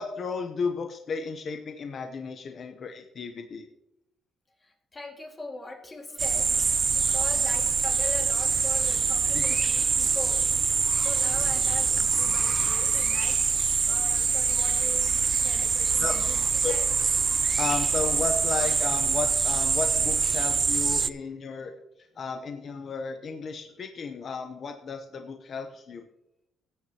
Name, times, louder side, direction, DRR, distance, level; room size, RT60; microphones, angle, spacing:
voice 1, 0.0-3.7 9.2-9.4 16.0-16.2 16.6-16.7 17.6-21.7 22.2-26.1, left 5 dB, 45° left, 6 dB, 0.8 m, -33 dB
voice 2, 4.6-10.4 11.0-13.4 13.9-16.4 16.7-16.9, left 2 dB, 20° left, 3 dB, 2.0 m, -41 dB
sound 1, 6.2-21.1, right 5 dB, 35° right, 0.3 m, -24 dB
16.5 x 9.1 x 2.9 m, 0.87 s
cardioid pair, 125°, 0 cm